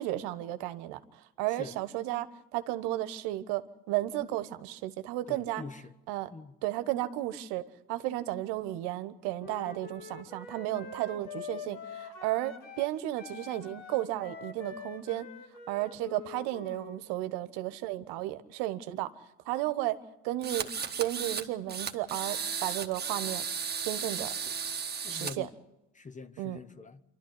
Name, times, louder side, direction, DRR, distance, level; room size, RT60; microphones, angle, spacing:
voice 1, 0.0-5.6 6.1-6.3 6.6-7.6 7.9-15.3 15.7-19.1 19.4-20.0 20.2-20.7 21.0-23.5 23.8-24.3 25.1-25.5 26.4-26.6, right 15 dB, 60° right, 1.4 m, -33 dB
voice 2, 5.3-5.9 6.3-6.6 24.9-25.5 25.9-27.0, left 4 dB, 15° left, 0.9 m, -44 dB
Wind instrument woodwind instrument, 9.4-12.9 13.2-17.0, left 6 dB, 65° left, 2.6 m, -45 dB
sound 1, 20.4-21.4 21.7-25.3, right 6 dB, 20° right, 1.6 m, -35 dB
26.5 x 12.5 x 9.8 m
hypercardioid pair, 90°, 46 cm